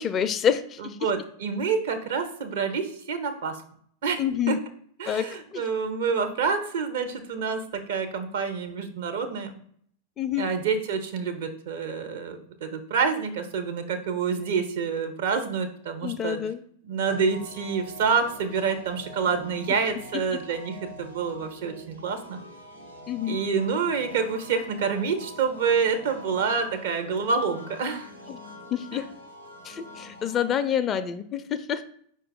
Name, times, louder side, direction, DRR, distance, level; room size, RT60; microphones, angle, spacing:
voice 1, 0.0-1.0 4.2-4.6 5.1-5.6 10.2-10.5 16.0-16.6 23.1-23.4 28.3-28.4 28.7-29.0 29.6-31.4 31.7-31.8, left 9 dB, 25° left, 11 dB, 0.4 m, -27 dB
voice 2, 0.8-3.5 4.0-4.2 4.5-4.6 5.0-7.6 7.9-9.6 10.4-16.4 16.8-22.4 23.3-28.1, right 5 dB, 55° right, 6 dB, 0.7 m, -27 dB
sound 1, 17.0-30.5, equal, 85° right, 0.8 m, -45 dB
5.0 x 2.3 x 4.6 m, 0.62 s
figure-of-eight pair, 90°, 0 cm